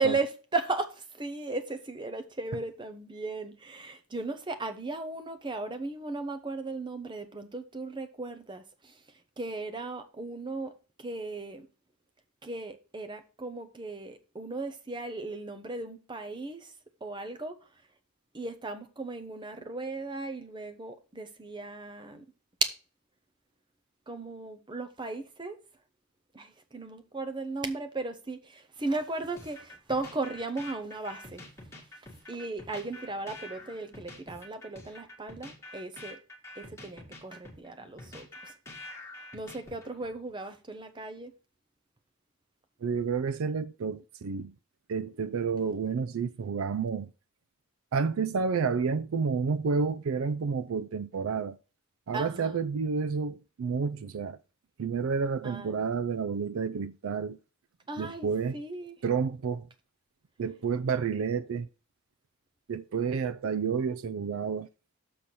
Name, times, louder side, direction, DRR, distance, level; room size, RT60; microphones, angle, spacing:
voice 1, 0.0-9.0 9.4-10.7 11.0-11.7 12.4-16.7 17.0-17.5 18.3-22.2 22.6-22.7 24.1-25.6 26.3-31.4 32.3-36.2 36.6-38.5 39.3-41.3 52.1-52.6 55.4-55.7 57.9-58.3 58.5-59.0, right 3 dB, 20° right, 0.8 m, -36 dB
sound 1, 29.4-40.2, left 1 dB, 10° left, 1.9 m, -47 dB
voice 2, 42.8-44.5 44.9-47.1 47.9-51.6 52.1-54.4 54.8-57.4 58.0-58.6 59.0-59.7 60.4-61.7 62.7-64.7, right 5 dB, 65° right, 0.4 m, -30 dB
6.9 x 4.2 x 6.2 m
head